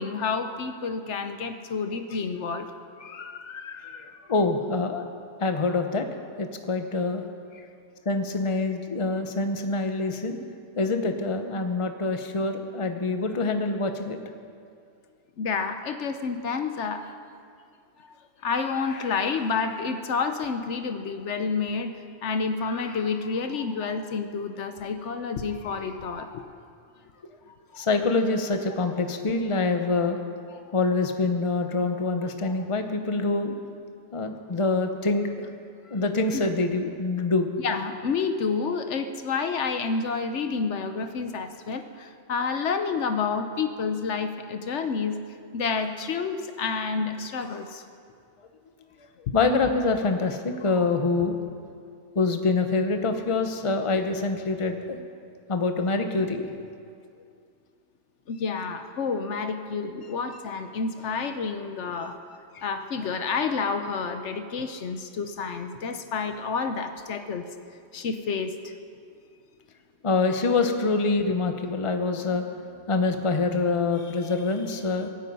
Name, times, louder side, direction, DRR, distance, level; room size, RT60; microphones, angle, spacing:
voice 1, 0.0-2.7 3.0-4.2 15.4-17.1 18.4-21.9 22.2-26.5 27.8-27.9 30.5-30.6 36.3-36.4 37.6-45.2 45.5-47.8 49.3-49.4 58.3-62.2 62.6-67.4 67.9-68.7, left 5 dB, 70° left, 8 dB, 1.1 m, -29 dB
voice 2, 4.3-5.0 5.4-6.0 6.4-7.2 8.0-10.4 10.8-14.2 27.8-30.2 30.7-33.5 34.1-35.5 35.9-37.5 49.3-51.4 52.1-55.0 55.5-56.5 62.5-62.6 70.0-72.5 72.9-75.1, left 3 dB, 30° left, 6 dB, 0.9 m, -25 dB
24.0 x 9.1 x 5.5 m, 2.3 s
omnidirectional pair, 1.3 m